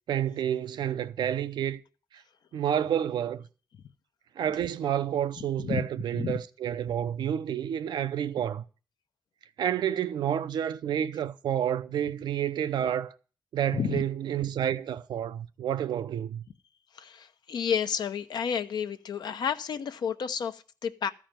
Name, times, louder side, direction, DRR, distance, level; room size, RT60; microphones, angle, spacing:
voice 1, 0.1-1.8 2.5-3.4 4.4-8.6 9.6-13.1 13.5-16.4, right 10 dB, 90° right, 0.7 m, -29 dB
voice 2, 5.4-5.8 6.1-6.4 13.7-14.0 16.9-21.1, left 7 dB, 70° left, 0.8 m, -31 dB
14.0 x 5.0 x 9.0 m
cardioid pair, 110°, 7 cm